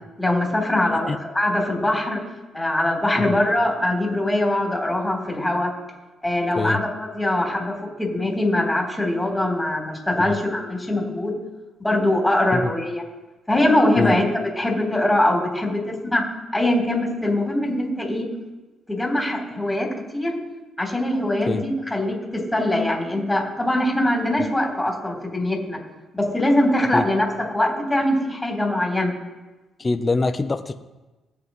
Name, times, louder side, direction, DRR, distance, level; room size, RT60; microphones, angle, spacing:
voice 1, 0.2-2.2 2.5-5.7 6.2-11.4 11.8-13.0 13.5-14.2 14.6-16.3 16.5-18.3 18.9-20.4 20.8-25.8 26.1-29.1, left 1 dB, 10° left, -1 dB, 3.7 m, -22 dB
voice 2, 29.8-30.7, left 3 dB, 25° left, 8 dB, 0.7 m, -24 dB
19.5 x 7.9 x 3.2 m, 1.1 s
cardioid pair, 90°, 0 cm